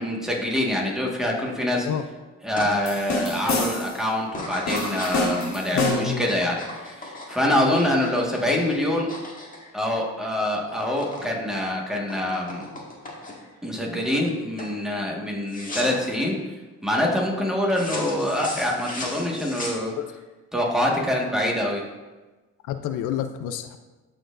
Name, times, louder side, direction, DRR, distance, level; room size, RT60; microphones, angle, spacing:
voice 1, 0.0-1.9 2.4-9.1 9.7-12.6 13.6-16.4 16.8-19.9 20.5-21.8, left 1 dB, ahead, -2 dB, 1.5 m, -25 dB
sound 1, 2.6-2.7 3.2-3.6 4.3-10.3 10.6-11.3 11.6-13.6 14.0-14.3 14.6-14.8 15.5-16.1 17.7-20.2, left 2 dB, 25° left, 1.8 m, -36 dB
sound 2, 2.9-4.0 4.7-6.2, left 2 dB, 60° left, 2.1 m, -27 dB
voice 2, 5.7-6.3 20.0-20.1 22.7-23.8, left 10 dB, 85° left, 9 dB, 0.5 m, -28 dB
12.5 x 4.5 x 2.5 m, 1.2 s
cardioid pair, 90°, 30 cm